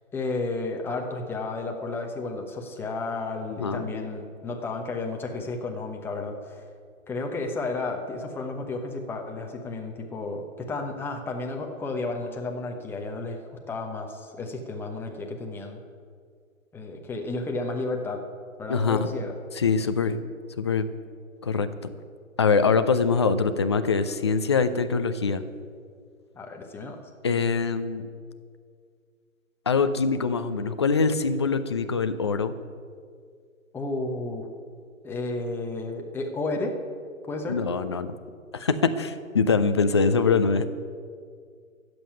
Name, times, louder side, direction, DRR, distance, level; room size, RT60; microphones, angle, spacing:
voice 1, 0.1-6.6 7.1-13.4 13.7-15.8 16.7-18.2 18.6-19.3 26.3-27.0 33.7-34.5 35.0-36.7 37.3-37.6, left 3 dB, 5° left, 2 dB, 0.9 m, -32 dB
voice 2, 18.7-19.1 19.5-20.2 20.6-20.9 21.4-21.7 22.4-25.4 27.2-28.0 29.7-32.5 37.5-38.1 38.5-40.7, left 5 dB, 20° left, 10 dB, 0.4 m, -23 dB
13.5 x 7.8 x 9.2 m, 2.1 s
figure-of-eight pair, 135°, 41 cm